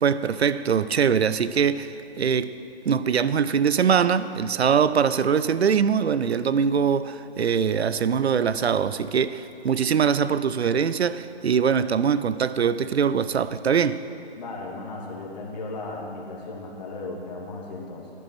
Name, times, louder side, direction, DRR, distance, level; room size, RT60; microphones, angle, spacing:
voice 1, 0.0-2.5 2.9-14.0, right 7 dB, 80° right, 0.6 m, -22 dB
voice 2, 14.4-18.1, left 2 dB, 40° left, 2.2 m, -36 dB
11.0 x 9.7 x 6.1 m
hypercardioid pair, 155°, 32 cm